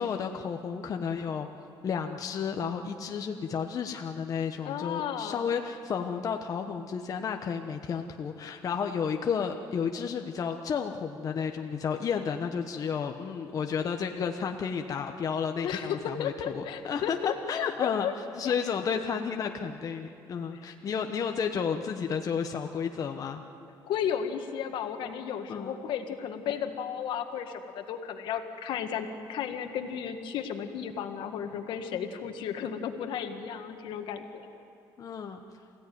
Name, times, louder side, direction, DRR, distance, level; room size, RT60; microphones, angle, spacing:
voice 1, 0.0-1.5 1.8-17.2 17.5-18.1 18.3-23.4 25.5-25.8 35.0-35.4, left 6 dB, 45° left, 4 dB, 1.1 m, -32 dB
voice 2, 4.7-5.5 15.6-18.1 18.4-18.5 23.8-34.5, left 8 dB, 75° left, 6 dB, 1.9 m, -34 dB
28.0 x 16.5 x 9.5 m, 2.7 s
cardioid pair, 115°, 8 cm